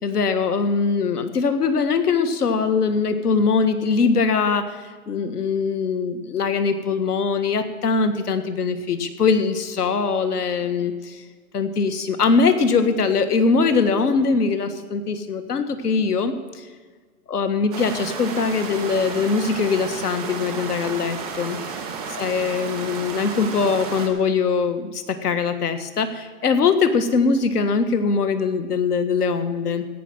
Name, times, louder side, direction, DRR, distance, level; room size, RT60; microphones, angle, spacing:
voice 1, 0.0-11.2 11.5-16.7 17.3-21.6 22.1-29.9, left 5 dB, 80° left, 9 dB, 1.7 m, -22 dB
sound 1, 17.7-24.1, right 5 dB, 5° left, 0.5 m, -32 dB
16.5 x 6.0 x 9.0 m, 1.5 s
hypercardioid pair, 165°, 45 cm